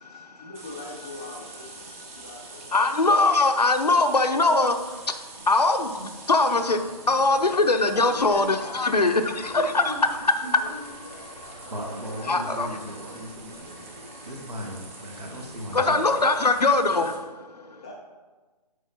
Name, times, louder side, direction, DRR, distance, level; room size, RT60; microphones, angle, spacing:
voice 1, 0.4-2.9 7.9-8.3 8.6-9.0 9.9-10.0 10.4-12.6 17.8-17.9, left 2 dB, 10° left, -3 dB, 0.3 m, -43 dB
sound 1, 0.5-17.2, right 3 dB, 20° right, 0.8 m, -45 dB
voice 2, 2.7-4.8 5.4-9.9 10.6-10.7 12.3-12.7 14.1-14.3 15.7-17.8, left 3 dB, 80° left, 7 dB, 0.7 m, -22 dB
voice 3, 10.4-10.8 11.7-16.0, equal, 75° right, 0 dB, 1.7 m, -37 dB
7.3 x 4.8 x 4.3 m, 1.3 s
figure-of-eight pair, 140°, 20 cm